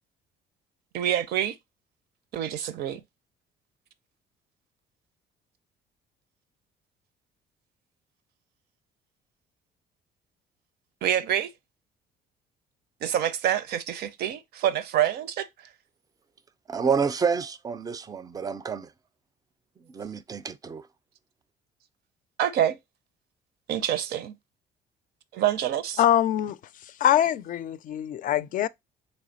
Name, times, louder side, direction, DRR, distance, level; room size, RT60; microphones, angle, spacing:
voice 1, 0.9-1.6 2.3-3.0 11.0-11.5 13.0-15.5 22.4-22.8 23.7-24.3 25.3-26.0, right 11 dB, 70° right, 0.5 m, -26 dB
voice 2, 16.7-18.9 19.9-20.9, right 5 dB, 20° right, 0.4 m, -28 dB
voice 3, 26.0-28.7, left 11 dB, 50° left, 0.4 m, -24 dB
3.4 x 3.1 x 3.9 m
cardioid pair, 110°, 17 cm